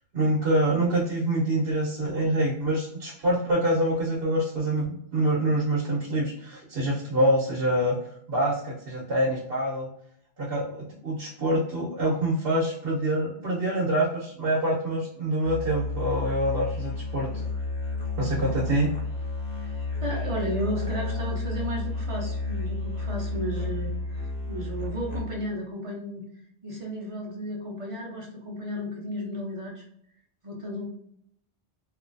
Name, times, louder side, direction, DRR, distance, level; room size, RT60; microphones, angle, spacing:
voice 1, 0.1-7.9 8.3-9.9 10.4-17.3 18.2-18.9, right 1 dB, 60° right, -5 dB, 1.0 m, -26 dB
Musical instrument, 15.4-25.6, left 3 dB, 40° left, 0.9 m, -31 dB
voice 2, 19.6-26.2 26.6-29.8 30.4-30.9, equal, 35° right, -3 dB, 0.6 m, -34 dB
2.9 x 2.5 x 2.6 m, 0.71 s
omnidirectional pair, 1.2 m